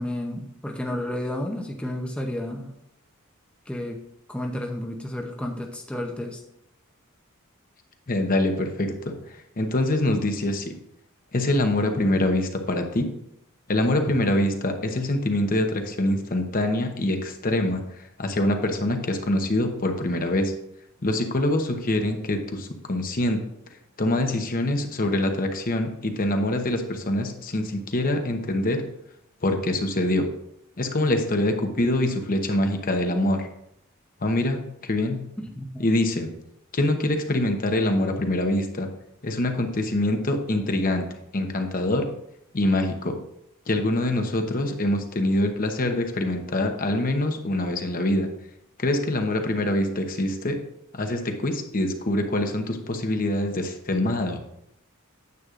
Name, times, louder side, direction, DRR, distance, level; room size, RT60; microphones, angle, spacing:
voice 1, 0.0-2.7 3.7-4.0 4.3-6.4 35.4-35.9, left 1 dB, 5° left, 1 dB, 0.7 m, -31 dB
voice 2, 8.1-9.1 9.6-10.7 11.3-13.1 13.7-17.8 18.2-20.5 21.0-23.4 24.0-28.8 29.4-30.2 30.8-33.5 34.2-35.2 35.8-36.3 36.7-38.9 39.2-41.0 41.3-42.1 42.5-43.2 43.7-48.3 48.8-50.5 50.9-54.4, left 1 dB, 40° left, 5 dB, 0.9 m, -24 dB
9.5 x 7.9 x 2.5 m, 0.78 s
head